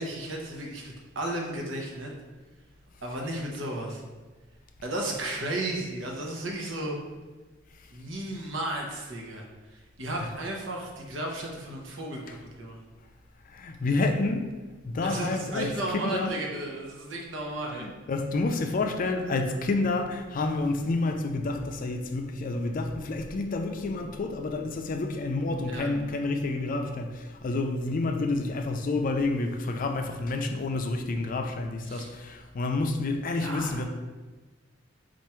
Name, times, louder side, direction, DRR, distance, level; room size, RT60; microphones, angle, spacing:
voice 1, 0.0-2.1 3.0-4.0 4.8-7.0 7.9-9.4 9.7-12.8 15.0-17.8 25.7-25.9 31.9-32.1 33.3-33.8, right 1 dB, 75° right, 0.9 m, -34 dB
voice 2, 13.5-15.7 16.1-16.3 17.7-33.8, left 3 dB, 45° left, 0.4 m, -29 dB
4.6 x 2.5 x 4.3 m
head